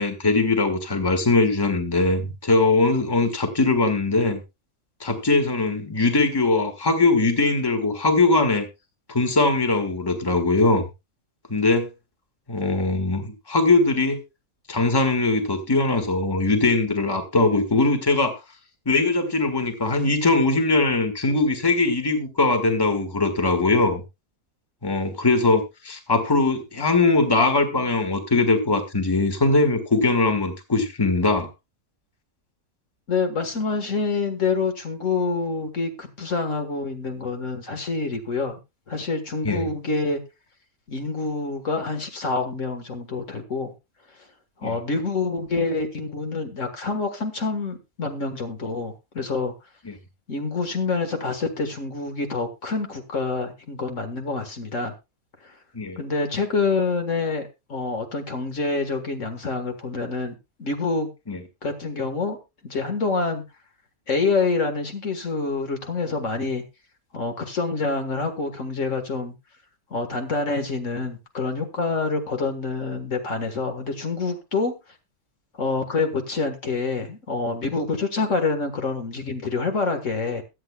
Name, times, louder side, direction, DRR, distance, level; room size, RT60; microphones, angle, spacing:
voice 1, 0.0-4.4 5.0-8.7 9.1-10.8 11.5-11.9 12.5-14.2 14.7-18.4 18.8-24.0 24.8-31.5 39.4-39.7 44.6-44.8 49.8-49.9 55.7-56.0 61.3-61.4, left 3 dB, 15° left, 7 dB, 1.7 m, -21 dB
voice 2, 33.1-38.6 38.9-40.2 40.9-43.7 44.6-49.5 50.3-54.9 55.4-55.5 56.0-57.4 57.7-61.1 61.6-62.4 62.6-63.4 64.1-66.6 67.1-69.3 69.9-74.7 75.6-80.4, left 4 dB, 60° left, 5 dB, 1.8 m, -26 dB
22.0 x 8.4 x 2.3 m, 0.25 s
omnidirectional pair, 1.5 m